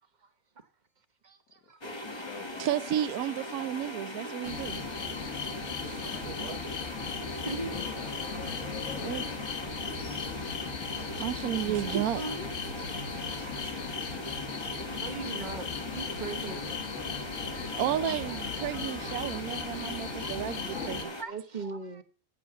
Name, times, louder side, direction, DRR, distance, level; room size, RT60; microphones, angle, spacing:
voice 1, 0.2-0.7 1.2-2.3 6.0-6.5 7.4-7.9 12.1-13.0 15.0-16.6 17.5-17.8 18.1-19.5 20.0-20.9 21.2-22.0, right 3 dB, 30° right, 1.1 m, -42 dB
voice 2, 1.6-3.2 14.5-15.4 16.3-18.3, left 6 dB, 65° left, 1.6 m, -50 dB
sound 1, 1.8-21.2, left 1 dB, 20° left, 1.0 m, -40 dB
voice 3, 2.6-4.8 5.8-6.8 9.0-9.2 11.2-12.2 13.4-13.7 14.0-14.1 17.8-21.2, right 11 dB, 65° right, 1.0 m, -33 dB
sound 2, 4.4-21.0, left 6 dB, 45° left, 1.4 m, -37 dB
9.4 x 8.6 x 5.8 m
omnidirectional pair, 1.8 m